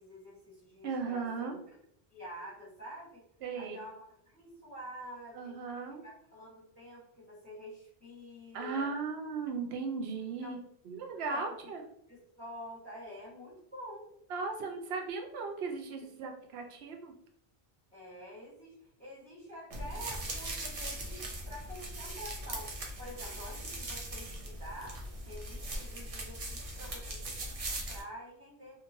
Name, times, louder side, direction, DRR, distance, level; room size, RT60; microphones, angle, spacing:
voice 1, 0.0-1.3 1.7-1.8 2.1-3.2 3.6-5.5 6.0-8.9 10.4-10.6 11.1-11.8 12.1-14.1 17.9-28.8, equal, 10° left, -9 dB, 0.9 m, -48 dB
voice 2, 0.8-1.6 3.4-3.8 5.3-6.0 8.5-10.6 10.8-11.8 14.3-17.1, right 4 dB, 75° right, 3 dB, 0.8 m, -37 dB
sound 1, 19.7-28.0, right 1 dB, 45° right, 0.5 m, -40 dB
2.8 x 2.5 x 2.6 m, 0.70 s
omnidirectional pair, 1.1 m